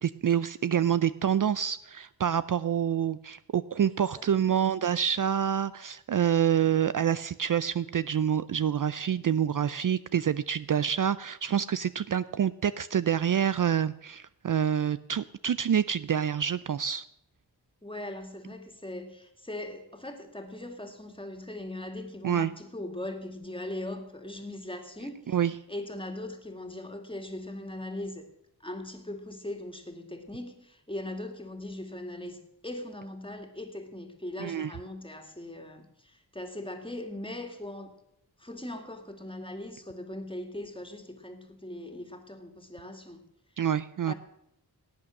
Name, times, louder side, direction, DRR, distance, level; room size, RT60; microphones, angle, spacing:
voice 1, 0.0-17.0 22.2-22.5 25.3-25.5 34.4-34.7 43.6-44.1, right 9 dB, 55° right, 16 dB, 0.5 m, -27 dB
voice 2, 3.8-4.9 17.8-28.3 28.6-37.9 38.4-43.2 44.1-44.2, left 1 dB, 15° left, 6 dB, 2.3 m, -40 dB
17.5 x 8.7 x 6.5 m, 0.82 s
wide cardioid pair, 65°, 39 cm